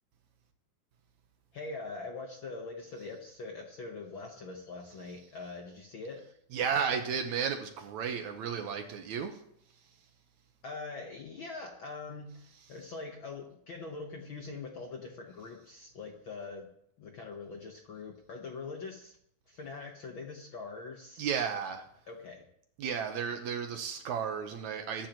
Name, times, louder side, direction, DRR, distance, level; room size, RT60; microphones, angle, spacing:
voice 1, 1.5-6.2 10.6-16.7 17.0-19.2 19.5-21.3 22.1-22.5, left 3 dB, 60° left, 2 dB, 1.4 m, -43 dB
voice 2, 6.5-9.4 21.2-21.8 22.8-25.1, right 7 dB, 70° right, 5 dB, 2.2 m, -33 dB
22.0 x 10.5 x 3.0 m, 0.71 s
omnidirectional pair, 3.6 m